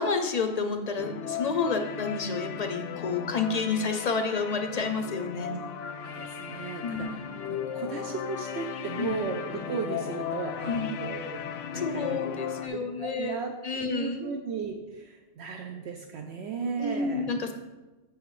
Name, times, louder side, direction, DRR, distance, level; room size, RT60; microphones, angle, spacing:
voice 1, 0.0-5.5 6.8-7.2 9.0-9.2 10.7-10.9 11.7-13.4 13.6-14.4 16.8-17.5, left 4 dB, 45° left, 6 dB, 0.5 m, -30 dB
sound 1, 1.0-12.7, left 8 dB, 85° left, 0.9 m, -36 dB
voice 2, 6.0-11.4 11.7-12.3 12.7-17.2, right 5 dB, 70° right, 3 dB, 0.9 m, -36 dB
7.2 x 6.3 x 3.2 m, 1.1 s
omnidirectional pair, 1.2 m